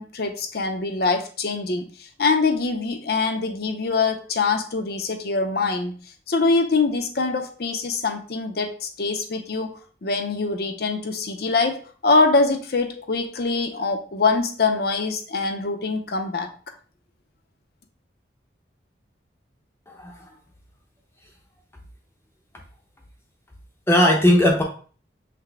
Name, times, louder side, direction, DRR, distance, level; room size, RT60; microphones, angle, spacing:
voice 1, 0.0-5.9 6.3-9.7 10.0-16.5, left 3 dB, 55° left, 5 dB, 0.6 m, -24 dB
voice 2, 19.9-20.2 23.9-24.6, left 1 dB, 15° left, 1 dB, 0.6 m, -18 dB
5.8 x 2.1 x 3.3 m, 0.40 s
head